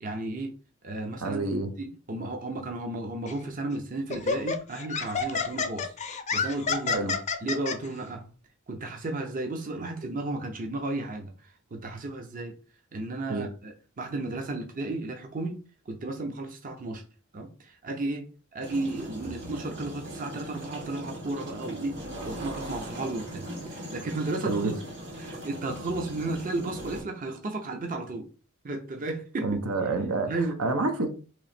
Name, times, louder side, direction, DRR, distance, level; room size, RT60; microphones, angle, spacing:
voice 1, 0.0-0.6 0.8-1.4 1.8-7.1 7.4-8.3 8.7-12.6 12.9-15.6 15.9-17.0 17.3-24.8 25.2-28.3 28.6-29.6 30.3-30.6, right 2 dB, 40° right, 0.6 m, -34 dB
voice 2, 1.2-1.7 6.9-7.1 13.3-13.5 24.4-24.7 29.4-30.3 30.6-31.1, right 3 dB, 75° right, 0.7 m, -28 dB
Laughter, 3.3-3.5 4.1-7.8, left 5 dB, 35° left, 0.5 m, -29 dB
sound 1, 18.6-27.0, equal, 60° right, 1.8 m, -39 dB
3.1 x 2.8 x 4.1 m
head